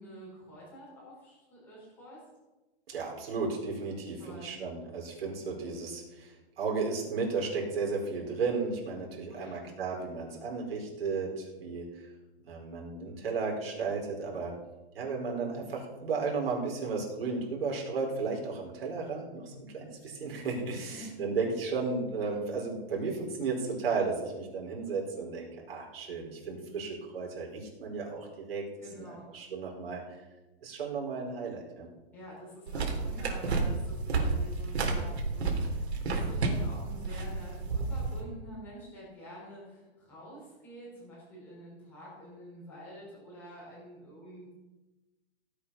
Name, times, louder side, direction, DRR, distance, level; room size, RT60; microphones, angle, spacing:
voice 1, 0.0-2.2 4.2-4.5 9.3-9.6 20.9-21.1 28.8-29.3 32.1-44.5, equal, 5° left, -8 dB, 4.9 m, -48 dB
voice 2, 2.9-12.1 12.5-14.5 14.9-28.7 29.0-30.0 30.6-31.9, right 4 dB, 65° right, -1 dB, 4.9 m, -34 dB
sound 1, 32.7-38.2, right 3 dB, 85° right, 3.9 m, -31 dB
17.0 x 8.7 x 5.8 m, 1.1 s
hypercardioid pair, 180°, 32 cm